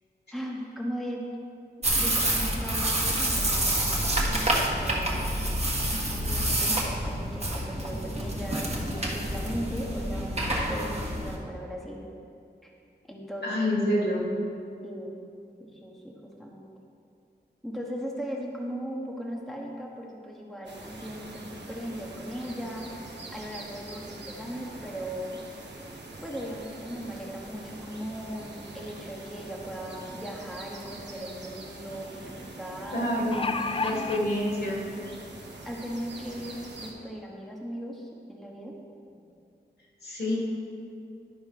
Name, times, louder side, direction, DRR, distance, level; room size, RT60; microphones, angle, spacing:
voice 1, 0.3-1.3 2.0-4.1 4.8-5.6 6.1-12.1 12.6-12.7 13.1-13.5 14.8-15.3 15.6-16.7 17.6-25.4 26.2-33.1 35.6-38.8, equal, ahead, -2 dB, 1.1 m, -38 dB
sound 1, 1.8-11.4, right 1 dB, 35° right, 1.3 m, -28 dB
voice 2, 13.4-14.4 32.9-34.8 40.0-40.4, left 1 dB, 75° left, -4 dB, 2.4 m, -27 dB
sound 2, 20.7-36.9, right 2 dB, 80° right, 1.1 m, -44 dB
sound 3, 30.9-31.0 31.3-31.4 33.0-34.2 35.1-35.2 35.6-35.7, left 3 dB, 30° left, 0.4 m, -30 dB
11.0 x 5.4 x 4.9 m, 2.5 s
wide cardioid pair, 80°, 18 cm